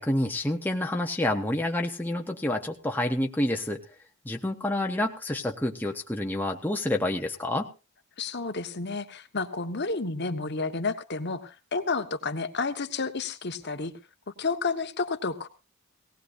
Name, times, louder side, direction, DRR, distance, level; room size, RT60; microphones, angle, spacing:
voice 1, 0.0-3.8 4.2-7.7, left 1 dB, 10° left, 2 dB, 0.7 m, -28 dB
voice 2, 8.2-13.9 14.4-15.5, left 4 dB, 50° left, 7 dB, 1.1 m, -31 dB
18.5 x 18.0 x 2.5 m, 0.30 s
head